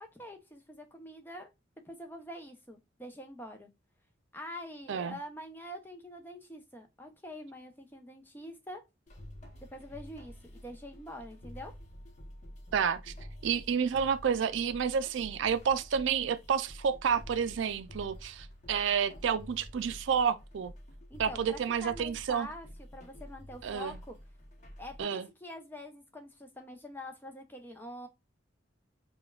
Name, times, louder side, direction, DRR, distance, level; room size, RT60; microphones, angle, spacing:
voice 1, 0.1-1.5 1.9-3.7 4.3-8.8 9.7-11.7 21.1-22.7 22.9-24.2 24.8-28.1, left 1 dB, 10° left, 0.6 m, -45 dB
sound 1, 9.1-25.0, equal, 35° left, 0.8 m, -49 dB
voice 2, 12.7-13.1 13.4-20.7 21.2-22.5 23.6-24.0 25.0-25.3, right 7 dB, 75° right, 0.4 m, -30 dB
5.1 x 2.2 x 2.2 m
head